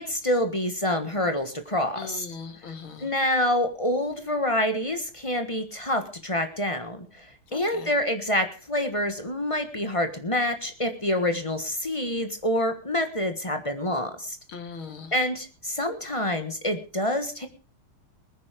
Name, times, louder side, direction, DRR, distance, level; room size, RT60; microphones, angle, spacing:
voice 1, 0.0-2.2 3.0-7.3 7.5-14.4 15.1-17.5, left 1 dB, 20° left, 7 dB, 1.2 m, -27 dB
voice 2, 2.0-3.1 7.5-7.9 14.5-15.1, left 4 dB, 75° left, 7 dB, 2.8 m, -39 dB
20.0 x 9.7 x 5.1 m, 0.36 s
omnidirectional pair, 2.3 m